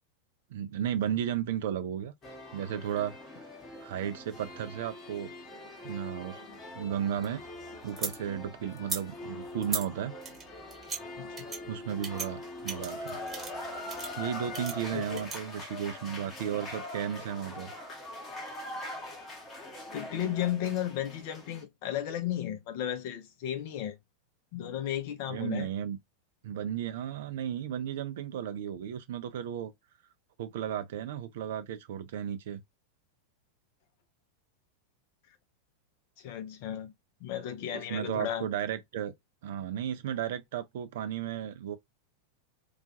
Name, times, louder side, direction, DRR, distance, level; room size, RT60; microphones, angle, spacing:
voice 1, 0.5-2.1 2.5-3.2 3.8-5.3 5.8-6.4 6.8-7.4 7.8-10.1 11.7-13.2 14.2-17.7 25.3-26.0 26.4-29.7 30.4-32.6 37.7-39.1 39.4-41.8, right 9 dB, 55° right, 0.4 m, -34 dB
sound 1, 2.2-21.6, left 1 dB, 25° left, 0.9 m, -43 dB
sound 2, 6.9-8.2 8.7-9.0 9.6-9.9 10.2-11.0 11.4-11.6 12.0-12.3 12.7-13.6 13.9-14.1 14.5-15.4, right 4 dB, 20° right, 0.9 m, -37 dB
voice 2, 11.2-11.5 14.9-15.2 19.9-24.0 24.5-25.7 36.2-36.9 37.2-38.5, left 10 dB, 45° left, 0.5 m, -34 dB
2.3 x 2.2 x 2.6 m
figure-of-eight pair, 90°, 0 cm